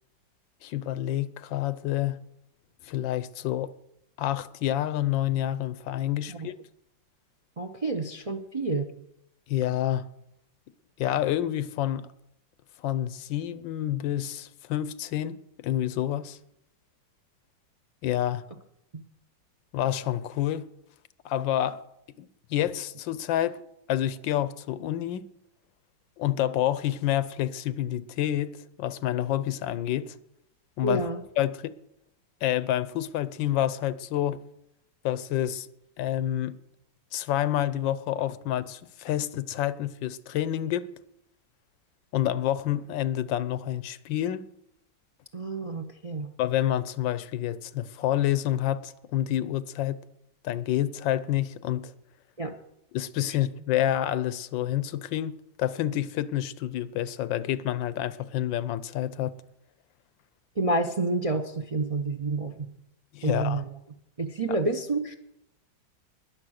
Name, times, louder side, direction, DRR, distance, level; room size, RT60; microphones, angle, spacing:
voice 1, 0.6-2.2 2.8-3.7 4.2-6.6 9.5-10.1 11.0-12.1 12.8-16.4 18.0-18.4 19.7-20.6 21.2-21.8 22.2-23.6 23.9-25.3 26.2-30.1 30.8-31.1 31.4-31.7 32.4-34.4 35.0-35.7 36.0-36.6 37.1-40.9 42.1-44.5 46.4-50.0 50.4-51.9 52.9-59.3 63.1-63.6, left 12 dB, 85° left, 1.4 m, -28 dB
voice 2, 7.6-8.9 18.9-19.0 30.8-31.2 45.3-46.3 52.4-52.6 60.6-62.6 63.2-63.7 64.2-65.1, right 2 dB, 40° right, 0.5 m, -29 dB
20.5 x 7.5 x 6.4 m
omnidirectional pair, 2.0 m